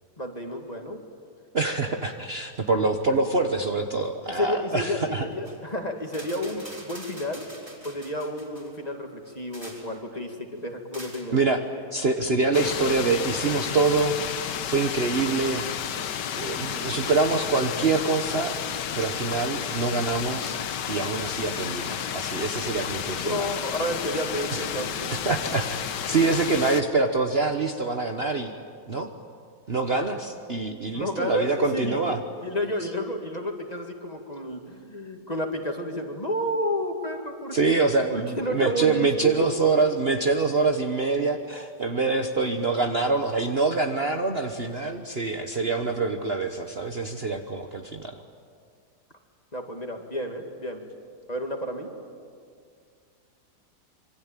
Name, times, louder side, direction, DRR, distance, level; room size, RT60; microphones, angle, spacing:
voice 1, 0.2-1.0 4.4-7.5 7.8-11.6 23.1-25.1 30.9-39.3 49.5-50.9 51.3-51.9, equal, 25° left, 3 dB, 2.5 m, -31 dB
voice 2, 1.5-5.3 11.3-11.6 11.9-14.2 14.6-15.7 16.4-18.6 18.9-20.6 20.9-23.5 24.5-24.7 25.1-25.8 26.1-28.5 28.9-29.1 29.7-32.2 37.5-48.2, right 3 dB, 40° right, 5 dB, 1.3 m, -25 dB
sound 1, 5.3-5.6 6.0-8.8 9.3-10.0 10.9-11.3 12.6-12.8, right 1 dB, 15° right, 4.1 m, -45 dB
sound 2, 12.5-26.8, left 8 dB, 90° left, 1.7 m, -32 dB
26.5 x 24.0 x 9.0 m, 2.1 s
omnidirectional pair, 1.8 m